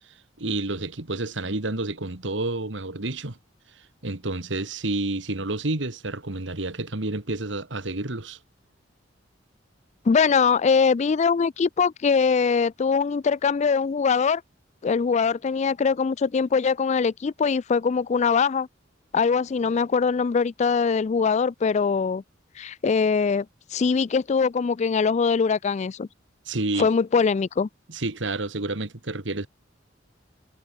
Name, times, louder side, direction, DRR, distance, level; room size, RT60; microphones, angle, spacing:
voice 1, 0.4-3.4 4.0-8.4 26.5-26.9 27.9-29.5, right 2 dB, 70° right, 2.0 m, -29 dB
voice 2, 10.1-14.4 14.8-18.7 19.1-22.2 22.6-23.5 23.7-26.1 26.8-27.7, left 5 dB, 35° left, 0.4 m, -22 dB
head